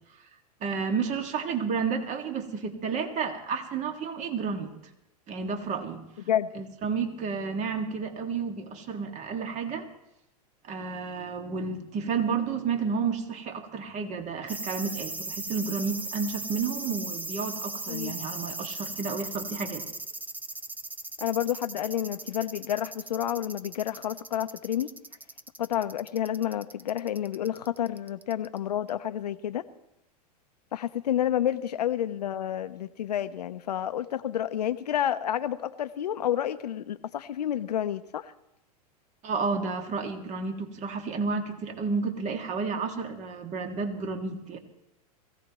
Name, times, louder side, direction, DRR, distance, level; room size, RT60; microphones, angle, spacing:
voice 1, 0.6-4.7 5.3-6.0 6.6-9.9 10.6-19.8 39.2-44.6, right 5 dB, 35° right, 5 dB, 2.0 m, -31 dB
sound 1, 14.5-28.6 28.9-29.0, right 2 dB, 10° right, 0.7 m, -38 dB
voice 2, 21.2-24.9 25.6-29.6 30.7-38.3, left 10 dB, 90° left, 12 dB, 0.7 m, -30 dB
22.0 x 16.0 x 3.0 m, 0.86 s
hypercardioid pair, 110°, 20 cm